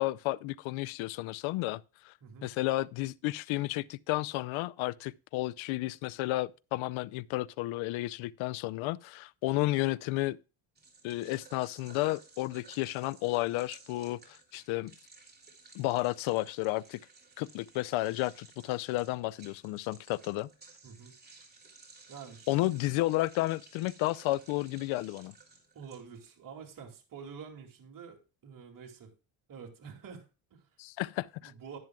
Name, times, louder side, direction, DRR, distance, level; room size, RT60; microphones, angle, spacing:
voice 1, 0.0-2.1 2.4-10.4 11.0-14.9 15.7-17.0 17.4-20.5 22.5-25.3 30.8-31.5, left 18 dB, 75° left, 0.6 m, -32 dB
voice 2, 2.2-2.5 20.8-21.1 22.1-22.5 25.7-29.1 29.5-30.7 31.4-31.8, right 6 dB, 40° right, 2.5 m, -48 dB
sound 1, 10.8-26.4, right 4 dB, 20° right, 3.2 m, -56 dB
11.0 x 10.5 x 2.3 m
cardioid pair, 105°, 48 cm